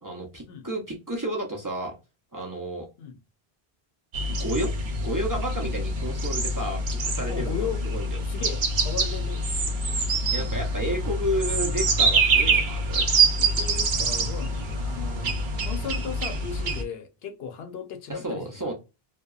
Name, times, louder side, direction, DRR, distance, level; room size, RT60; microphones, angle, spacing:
voice 1, 0.0-1.9 2.3-2.9 4.3-4.7 5.0-7.7 7.9-8.2 10.3-13.0 18.1-18.7, right 1 dB, 25° right, 0.4 m, -31 dB
sound 1, 4.1-16.8, right 2 dB, 80° right, 0.9 m, -25 dB
voice 2, 7.3-7.8 8.2-9.4 13.4-18.7, left 7 dB, 75° left, 0.8 m, -36 dB
2.7 x 2.2 x 2.3 m
omnidirectional pair, 1.1 m